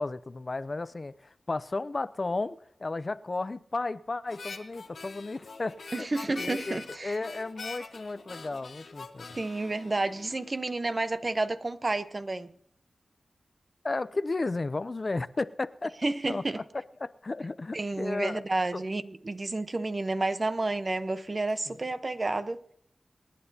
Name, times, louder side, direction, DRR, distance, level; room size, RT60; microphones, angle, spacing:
voice 1, 0.0-6.1 6.4-9.4 13.8-15.9 16.3-16.6 17.0-18.4 18.7-18.8 21.7-21.8, left 3 dB, 50° left, 0.5 m, -34 dB
Harmonica, 4.3-10.8, left 4 dB, 85° left, 1.5 m, -44 dB
voice 2, 5.9-7.2 9.4-12.5 16.0-16.6 17.7-22.6, right 2 dB, 45° right, 0.9 m, -30 dB
25.5 x 10.0 x 2.8 m
cardioid pair, 50°, 0 cm